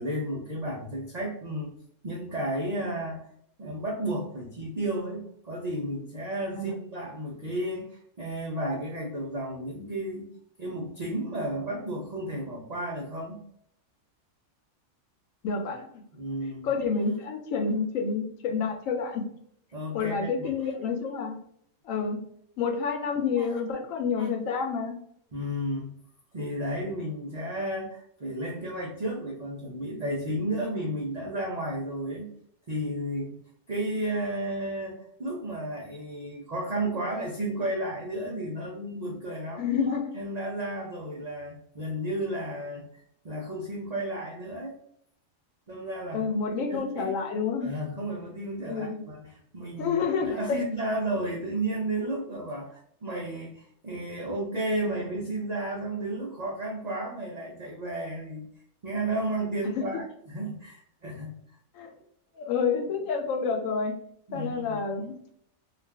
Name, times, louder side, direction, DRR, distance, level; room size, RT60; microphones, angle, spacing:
voice 1, 0.0-1.7 2.0-3.3 3.6-10.3 10.6-13.4 16.1-16.7 19.7-20.5 23.4-23.6 24.2-24.3 25.3-26.0 26.3-32.3 32.7-33.4 33.7-44.8 45.7-46.3 46.7-47.1 47.6-58.5 58.8-61.6 64.3-64.8, right 1 dB, 85° right, -2 dB, 0.3 m, -33 dB
voice 2, 15.4-16.0 16.6-19.2 19.9-21.4 21.8-22.2 22.6-25.0 39.6-40.1 46.1-47.7 48.7-49.1 49.8-50.6 59.7-60.0 61.7-61.9 62.3-64.0 64.3-65.2, left 5 dB, 75° left, 4 dB, 1.0 m, -29 dB
2.4 x 2.3 x 3.3 m, 0.68 s
omnidirectional pair, 1.4 m